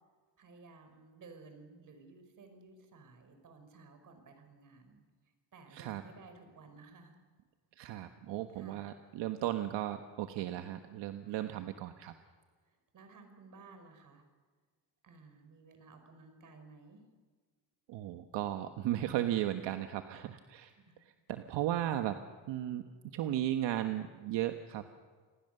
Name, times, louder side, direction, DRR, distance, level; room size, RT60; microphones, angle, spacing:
voice 1, 0.4-5.0 5.5-7.2 8.4-8.9 11.3-11.7 12.9-14.2 15.0-17.0 20.7-21.0, right 4 dB, 45° right, 7 dB, 5.4 m, -56 dB
voice 2, 7.8-12.1 17.9-20.7 21.3-22.2 22.5-22.8 23.1-24.8, right 12 dB, 75° right, 7 dB, 1.4 m, -35 dB
27.5 x 20.0 x 6.8 m, 1.5 s
cardioid pair, 130°, 43 cm